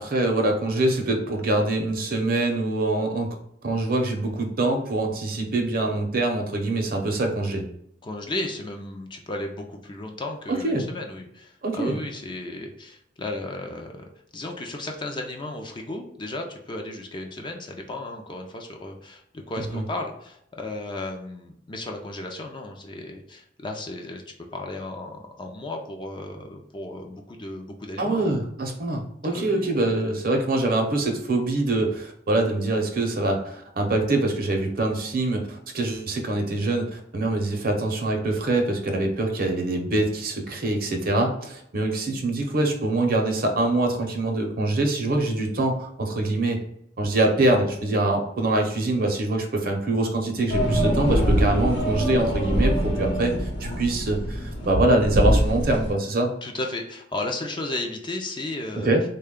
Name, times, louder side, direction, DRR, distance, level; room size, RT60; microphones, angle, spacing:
voice 1, 0.0-3.3 3.6-7.7 10.5-10.8 11.6-12.0 19.7-19.8 28.0-46.6 47.0-56.3 58.8-59.0, right 2 dB, 55° right, 3 dB, 0.7 m, -24 dB
voice 2, 8.0-14.0 14.3-24.2 24.5-28.4 29.3-29.7 30.0-30.2 56.4-58.9, left 2 dB, 25° left, 3 dB, 0.4 m, -34 dB
sound 1, 50.5-55.9, equal, 65° left, 0.9 m, -24 dB
3.4 x 2.2 x 3.6 m, 0.74 s
head